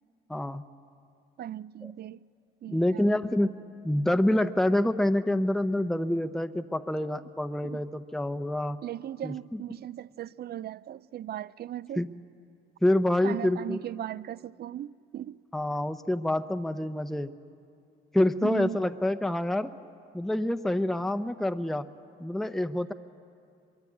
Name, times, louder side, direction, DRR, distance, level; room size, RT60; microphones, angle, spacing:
voice 1, 0.3-0.6 1.8-1.9 2.7-3.5 3.8-8.8 9.2-9.6 12.0-12.1 12.8-13.8 15.5-17.3 18.1-19.7 20.1-21.9 22.2-22.9, left 1 dB, ahead, 0.7 m, -27 dB
voice 2, 1.4-2.2 2.6-3.1 7.6-7.8 8.8-12.0 13.2-15.4 18.4-18.8, right 11 dB, 55° right, 0.5 m, -38 dB
23.0 x 22.5 x 8.4 m
cardioid pair, 90°, 20 cm